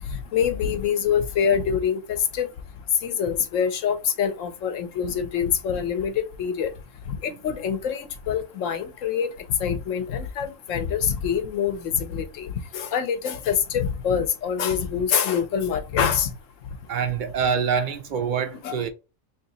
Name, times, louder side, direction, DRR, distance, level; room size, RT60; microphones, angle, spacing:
voice 1, 0.3-2.0 2.3-2.5 3.0-6.7 7.2-9.3 9.6-12.5 12.7-16.3 18.6-18.8, left 7 dB, 80° left, 1.1 m, -25 dB
voice 2, 16.9-18.9, right 7 dB, 60° right, 0.5 m, -25 dB
3.0 x 2.8 x 3.9 m
omnidirectional pair, 1.3 m